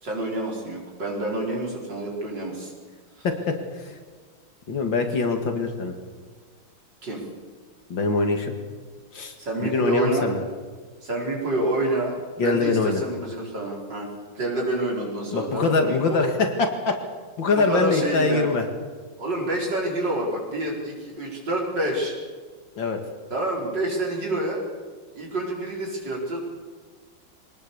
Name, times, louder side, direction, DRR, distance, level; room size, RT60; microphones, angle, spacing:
voice 1, 0.0-2.7 3.2-3.3 7.0-7.2 9.4-10.3 11.0-12.2 12.4-14.1 14.4-16.2 17.6-18.5 19.2-22.1 23.3-24.6 25.1-26.4, right 1 dB, 55° right, -2 dB, 5.5 m, -27 dB
voice 2, 3.2-3.9 4.7-5.9 7.9-8.5 9.1-9.3 9.6-10.4 12.4-13.0 15.3-16.9 17.4-18.7 22.8-23.0, left 3 dB, 65° left, 5 dB, 2.7 m, -23 dB
23.5 x 19.0 x 7.0 m, 1.5 s
omnidirectional pair, 2.2 m